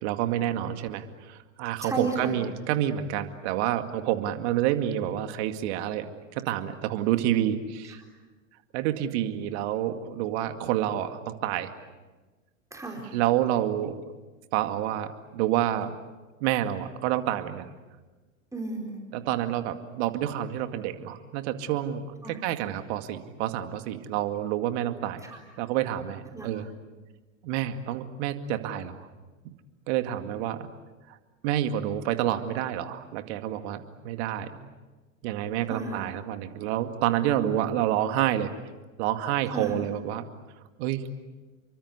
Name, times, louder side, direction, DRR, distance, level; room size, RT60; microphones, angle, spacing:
voice 1, 0.0-6.1 6.4-8.0 8.7-11.7 13.1-14.0 14.5-15.9 16.4-17.7 19.1-25.2 25.6-26.7 27.4-29.1 29.4-29.5 29.9-30.7 31.4-34.7 35.2-38.5 39.0-40.2 40.8-41.1, right 12 dB, 55° right, 8 dB, 2.2 m, -28 dB
voice 2, 1.8-2.3 7.9-8.0 12.7-13.0 18.5-19.1 22.2-22.4 25.2-25.4 26.3-26.5 35.7-36.0 39.5-39.8, right 3 dB, 10° right, 1 dB, 4.4 m, -33 dB
29.0 x 24.0 x 8.1 m, 1.3 s
hypercardioid pair, 90°, 40 cm